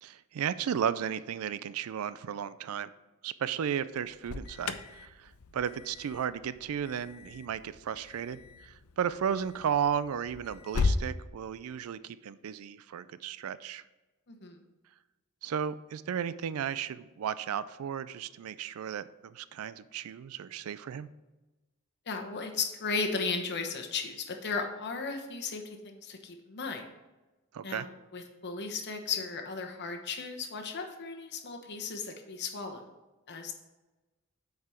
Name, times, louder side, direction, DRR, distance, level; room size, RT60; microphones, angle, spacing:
voice 1, 0.0-2.9 3.2-13.8 15.4-21.1 27.5-27.9, right 8 dB, 75° right, 16 dB, 0.4 m, -34 dB
Alarm, 3.9-11.1, left 4 dB, 80° left, 0.5 m, -37 dB
voice 2, 14.3-14.6 22.1-26.9 27.6-32.9 33.3-33.5, left 4 dB, 55° left, 4 dB, 1.0 m, -35 dB
8.3 x 4.8 x 4.4 m, 1.1 s
head